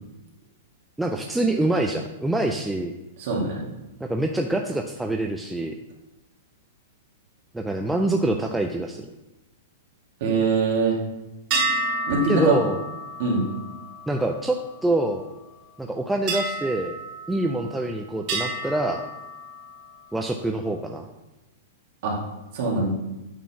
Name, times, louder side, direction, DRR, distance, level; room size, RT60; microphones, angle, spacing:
voice 1, 1.0-2.9 4.0-5.7 7.5-9.0 12.3-12.8 14.1-14.6 14.8-15.2 15.8-17.0 17.3-19.0 20.1-21.1, right 2 dB, 5° right, 3 dB, 0.3 m, -25 dB
voice 2, 3.2-3.7 10.2-11.0 12.1-12.6 13.2-13.4 22.0-22.2 22.5-22.9, right 3 dB, 40° right, -3 dB, 2.5 m, -22 dB
sound 1, 11.5-15.2 16.3-17.8 18.3-20.0, right 2 dB, 25° right, 2.9 m, -31 dB
9.1 x 4.3 x 5.8 m, 1.0 s
supercardioid pair, 180°, 0 cm